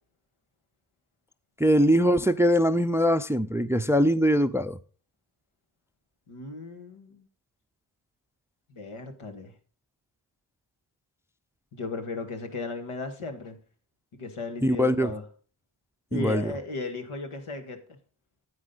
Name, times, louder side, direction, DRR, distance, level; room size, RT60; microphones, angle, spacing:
voice 1, 1.6-4.8 14.6-15.1 16.1-16.5, equal, 5° right, 0.4 m, -22 dB
voice 2, 6.3-7.2 8.7-9.5 11.7-13.6 14.1-15.2 16.1-17.8, left 3 dB, 90° left, 2.0 m, -36 dB
9.7 x 8.9 x 3.9 m
wide cardioid pair, 90°, 49 cm